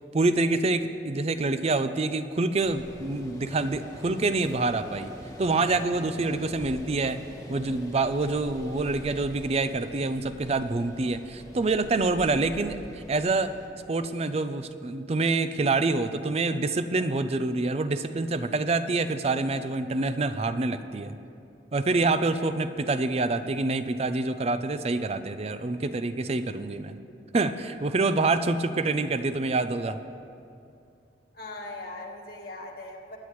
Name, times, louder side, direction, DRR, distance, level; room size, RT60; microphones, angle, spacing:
voice 1, 0.1-5.1 5.4-7.2 7.5-13.6 13.9-21.1 21.7-27.0 27.3-30.0, right 3 dB, 35° right, 11 dB, 0.5 m, -26 dB
sound 1, 2.6-13.7, equal, 20° left, 1.2 m, -44 dB
voice 2, 31.3-33.2, left 2 dB, 60° left, -1 dB, 1.5 m, -40 dB
23.5 x 9.6 x 3.1 m, 2.6 s
head